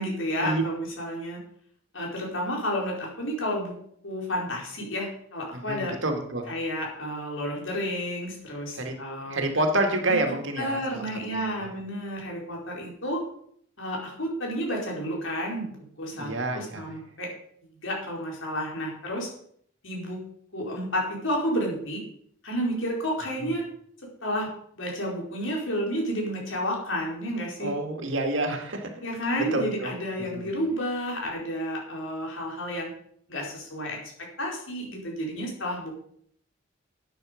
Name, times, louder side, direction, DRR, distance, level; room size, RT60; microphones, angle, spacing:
voice 1, 0.0-1.4 1.9-3.8 4.0-5.9 6.5-9.5 10.1-10.2 10.6-13.2 13.8-17.3 17.8-19.3 19.8-20.2 20.5-22.0 22.4-23.6 24.2-24.5 24.8-27.7 29.0-32.9 33.3-34.0 34.4-36.0, equal, 75° left, -1 dB, 4.5 m, -31 dB
voice 2, 5.5-6.5 8.7-8.9 9.3-11.0 11.3-11.7 16.1-16.9 23.4-23.5 27.6-28.9 29.4-29.9 30.3-30.5, right 2 dB, 70° right, 4 dB, 2.3 m, -28 dB
12.0 x 9.4 x 5.2 m, 0.65 s
head